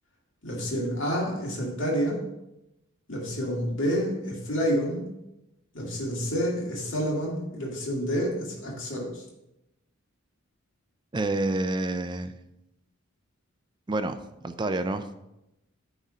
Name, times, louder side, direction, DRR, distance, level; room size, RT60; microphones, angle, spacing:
voice 1, 0.4-2.2 3.1-5.0 5.7-9.2, equal, 60° left, -3 dB, 2.3 m, -28 dB
voice 2, 11.1-12.3 13.9-14.2 14.4-15.1, right 2 dB, 20° right, 9 dB, 0.4 m, -28 dB
9.0 x 4.2 x 5.0 m, 0.89 s
head